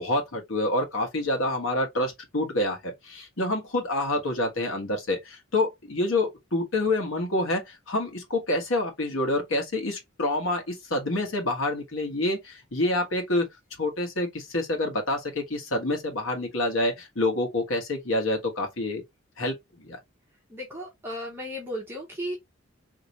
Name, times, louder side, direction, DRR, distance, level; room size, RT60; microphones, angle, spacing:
voice 1, 0.0-13.5 13.8-19.0 19.4-20.0, left 2 dB, 80° left, 1.4 m, -27 dB
voice 2, 20.5-22.4, equal, 10° right, 1.0 m, -35 dB
4.0 x 2.9 x 3.0 m
head